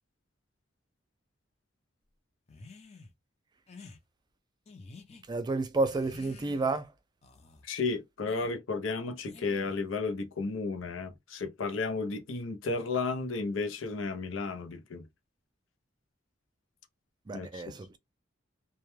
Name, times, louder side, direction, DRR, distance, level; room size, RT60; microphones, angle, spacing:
sound 1, 2.5-3.1 3.7-4.0 4.6-5.2 5.8-6.8 7.2-7.6 8.3-8.5 9.2-9.9, left 3 dB, 35° left, 0.6 m, -51 dB
voice 1, 5.3-6.9 17.3-18.0, right 3 dB, 20° right, 0.3 m, -30 dB
voice 2, 7.6-15.1 17.3-17.6, left 3 dB, 85° left, 0.6 m, -33 dB
2.2 x 2.1 x 3.1 m
head